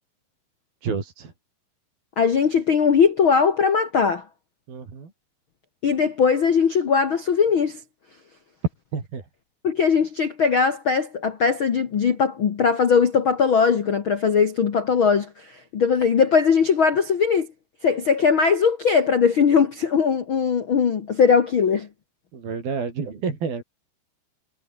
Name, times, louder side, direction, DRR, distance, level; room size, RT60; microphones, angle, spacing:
voice 1, 0.8-1.3 4.7-5.1 8.9-9.2 22.3-23.6, right 5 dB, 60° right, 6.4 m, -29 dB
voice 2, 2.2-4.2 5.8-7.8 9.6-17.5 17.8-21.9, left 6 dB, 65° left, 1.2 m, -20 dB
omnidirectional pair, 4.8 m